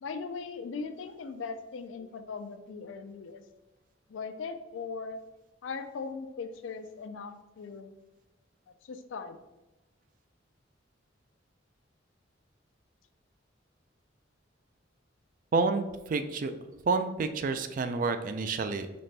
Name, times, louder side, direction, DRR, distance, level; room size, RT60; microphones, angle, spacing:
voice 1, 0.0-3.4 4.1-5.2 5.6-7.9 8.8-9.4, left 4 dB, 80° left, 9 dB, 0.4 m, -39 dB
voice 2, 15.5-16.5 16.9-19.0, right 4 dB, 45° right, 9 dB, 0.3 m, -29 dB
4.1 x 3.2 x 3.2 m, 1.1 s
head